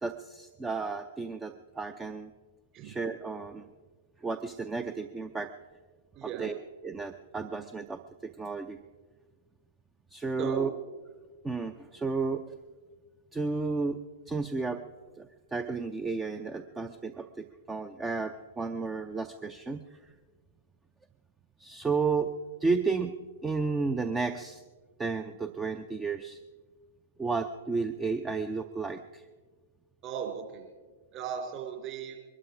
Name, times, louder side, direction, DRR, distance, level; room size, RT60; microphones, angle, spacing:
voice 1, 0.0-2.3 2.8-3.6 4.2-5.5 6.2-6.6 6.8-8.8 10.1-10.7 11.4-12.5 13.3-14.0 14.3-14.8 15.2-20.0 21.6-22.3 22.6-23.1 23.4-24.6 25.0-26.4 27.2-29.2, right 4 dB, 10° right, 9 dB, 0.5 m, -32 dB
voice 2, 6.1-6.5 10.4-10.7 30.0-30.6 31.1-32.2, right 8 dB, 35° right, 2 dB, 3.1 m, -36 dB
22.0 x 12.5 x 4.9 m, 1.4 s
figure-of-eight pair, 105°, 0 cm